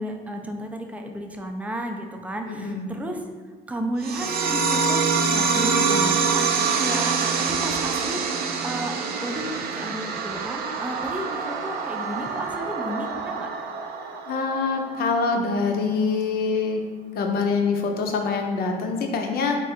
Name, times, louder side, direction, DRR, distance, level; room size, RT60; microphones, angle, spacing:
voice 1, 0.0-3.2 3.7-9.5 9.7-13.5, right 1 dB, 10° right, 3 dB, 0.4 m, -33 dB
voice 2, 2.5-2.9 14.3-16.8 17.2-19.6, left 4 dB, 65° left, 3 dB, 0.6 m, -25 dB
sound 1, 4.0-15.0, right 5 dB, 65° right, 0.5 m, -25 dB
3.7 x 2.4 x 4.2 m, 1.5 s
cardioid pair, 110°, 17 cm